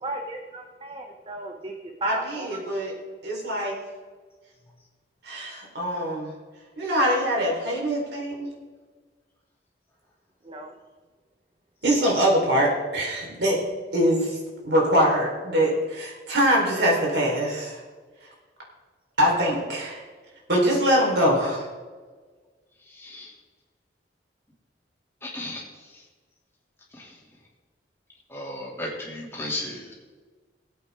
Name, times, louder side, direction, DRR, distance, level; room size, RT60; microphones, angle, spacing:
voice 1, 0.0-2.6 10.4-10.7, right 2 dB, 30° right, 3 dB, 1.0 m, -34 dB
voice 2, 2.0-2.9 3.2-3.7 5.2-6.3 6.8-8.5 11.8-13.6 13.9-14.4 14.6-17.8 19.2-20.0 20.5-21.7, equal, 70° right, -3 dB, 4.4 m, -23 dB
voice 3, 22.8-23.3 25.2-26.0 26.9-27.2 28.3-29.9, left 1 dB, 15° left, -4 dB, 3.0 m, -35 dB
19.5 x 8.6 x 3.8 m, 1.4 s
head